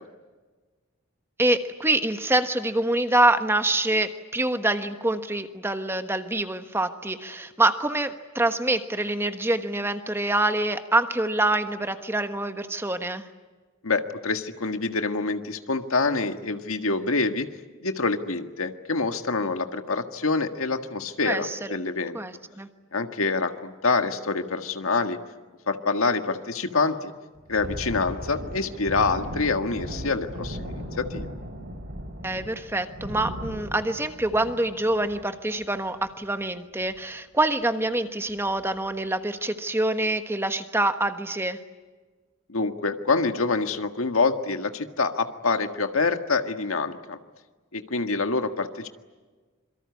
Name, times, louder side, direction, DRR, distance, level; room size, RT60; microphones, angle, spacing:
voice 1, 1.4-13.2 21.2-21.8 22.1-22.7 32.2-41.6, right 2 dB, 10° right, 8 dB, 1.3 m, -25 dB
voice 2, 13.8-17.5 17.8-22.2 22.9-25.2 25.7-27.1 27.5-31.3 42.5-47.2 47.7-48.9, left 3 dB, 85° left, 7 dB, 1.7 m, -26 dB
Thunder, 27.4-36.4 36.8-37.0 37.4-37.6 38.2-38.7, equal, 45° right, 7.8 m, -37 dB
26.5 x 23.5 x 9.6 m, 1.3 s
head